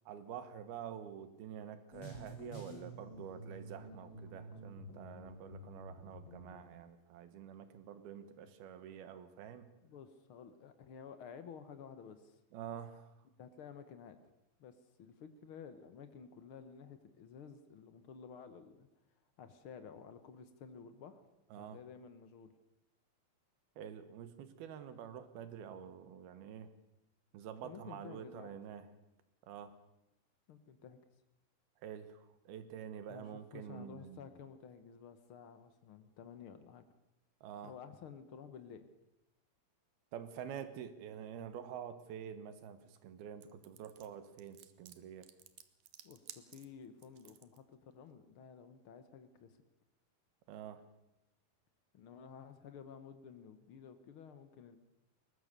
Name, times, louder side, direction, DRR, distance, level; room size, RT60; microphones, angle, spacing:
voice 1, 0.1-9.7 12.5-13.1 21.5-21.8 23.8-26.7 27.3-28.9 29.5-29.8 31.8-34.3 37.4-37.7 40.1-45.3 50.5-50.8, right 9 dB, 85° right, 12 dB, 3.3 m, -48 dB
sound 1, 1.9-6.7, equal, 35° left, 3.4 m, -50 dB
voice 2, 9.8-12.4 13.4-14.2 14.6-14.7 15.0-18.9 19.4-21.2 21.7-22.5 27.6-28.6 30.5-31.0 33.1-36.8 37.6-38.9 46.0-49.6 51.9-54.8, left 7 dB, 75° left, 10 dB, 1.2 m, -53 dB
sound 2, 43.4-47.6, right 11 dB, 70° right, 2.5 m, -55 dB
22.0 x 19.5 x 6.7 m, 0.90 s
omnidirectional pair, 4.3 m